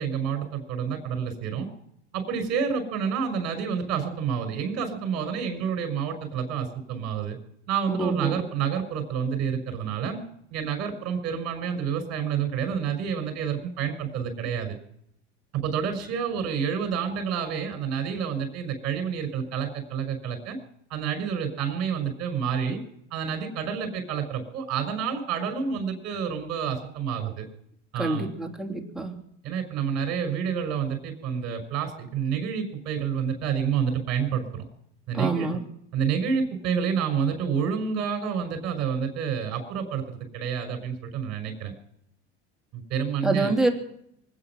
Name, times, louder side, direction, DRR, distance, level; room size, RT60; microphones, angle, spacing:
voice 1, 0.0-1.7 2.1-7.4 7.7-10.2 10.5-14.8 15.5-20.6 20.9-22.8 23.1-27.5 27.9-28.3 29.4-34.7 35.1-35.5 35.9-41.7 42.7-43.5, right 7 dB, 45° right, 6 dB, 5.7 m, -29 dB
voice 2, 7.9-8.5 28.0-29.2 35.1-35.6 43.2-43.7, right 2 dB, ahead, 1 dB, 3.1 m, -26 dB
25.0 x 9.0 x 6.1 m, 0.73 s
hypercardioid pair, 95°, 34 cm